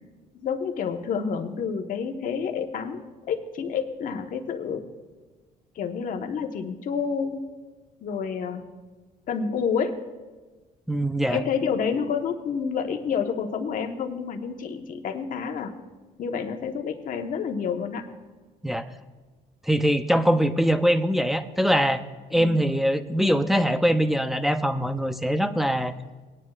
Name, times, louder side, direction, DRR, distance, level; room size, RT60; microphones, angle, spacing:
voice 1, 0.3-4.8 5.7-7.4 8.0-8.7 9.3-9.9 11.3-15.7 16.2-18.1 22.3-22.6, left 6 dB, 55° left, 5 dB, 1.2 m, -29 dB
voice 2, 10.9-11.4 18.6-18.9 19.6-22.0 22.3-25.9, equal, ahead, 10 dB, 0.5 m, -22 dB
20.0 x 9.7 x 2.4 m, 1.3 s
cardioid pair, 110°, 17 cm